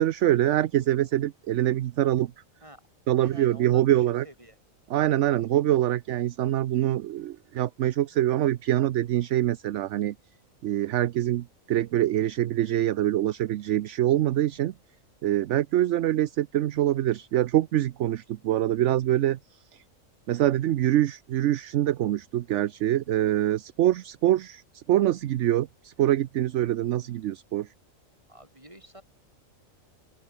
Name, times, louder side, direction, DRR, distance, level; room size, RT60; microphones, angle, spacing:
voice 1, 0.0-2.3 3.1-4.2 4.9-10.1 10.6-14.7 15.2-19.4 19.7-19.8 20.3-27.7, right 13 dB, 70° right, 0.9 m, -24 dB
voice 2, 3.1-4.6 28.3-29.0, right 1 dB, 20° right, 7.8 m, -49 dB
open air
omnidirectional pair, 1.4 m